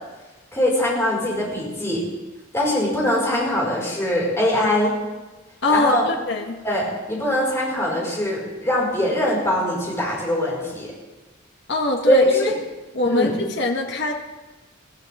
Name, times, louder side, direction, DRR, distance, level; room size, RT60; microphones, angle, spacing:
voice 1, 0.5-2.1 2.5-4.9 5.7-6.1 6.6-10.9 12.1-12.5 13.0-13.3, left 1 dB, 15° left, -4 dB, 5.2 m, -22 dB
voice 2, 5.6-6.6 11.7-12.5 12.9-14.1, left 2 dB, 60° left, 2 dB, 1.4 m, -23 dB
21.0 x 13.5 x 3.6 m, 1.2 s
head